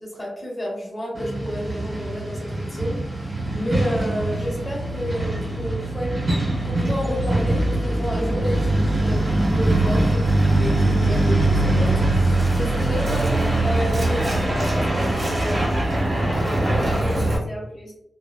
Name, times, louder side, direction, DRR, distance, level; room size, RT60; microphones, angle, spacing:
voice 1, 0.0-6.1 6.6-13.3 13.6-15.6, equal, 20° left, -4 dB, 0.9 m, -30 dB
Truck, 1.1-17.4, right 2 dB, 40° right, 1.2 m, -22 dB
voice 2, 13.0-13.5 16.4-17.9, equal, 45° left, -4 dB, 0.9 m, -34 dB
2.8 x 2.0 x 2.3 m, 0.83 s
wide cardioid pair, 110°, 0 cm